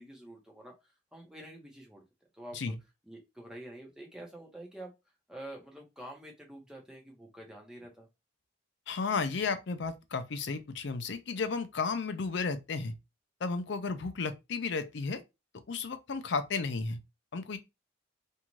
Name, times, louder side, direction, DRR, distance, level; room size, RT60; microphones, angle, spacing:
voice 1, 0.0-2.0 2.3-2.6 3.1-4.9 5.3-8.1, right 1 dB, 5° right, 0.8 m, -47 dB
voice 2, 8.9-12.9 13.4-15.2 15.7-17.0 17.3-17.6, left 4 dB, 60° left, 0.5 m, -33 dB
2.7 x 2.3 x 3.0 m
head